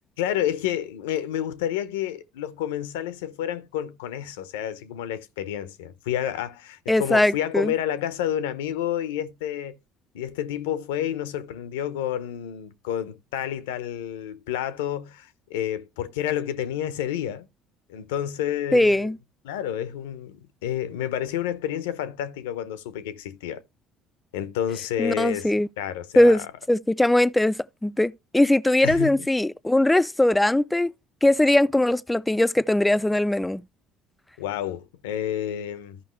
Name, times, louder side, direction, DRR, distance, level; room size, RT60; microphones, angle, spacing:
voice 1, 0.2-9.8 10.1-17.5 17.9-19.1 19.4-23.6 24.3-26.5 28.8-29.3 34.4-36.0, left 10 dB, 85° left, 0.8 m, -30 dB
voice 2, 6.9-7.7 18.7-19.2 25.0-25.7 26.2-30.9 31.2-33.6, left 1 dB, 10° left, 0.4 m, -20 dB
14.0 x 5.4 x 3.1 m
hypercardioid pair, 75°, 0 cm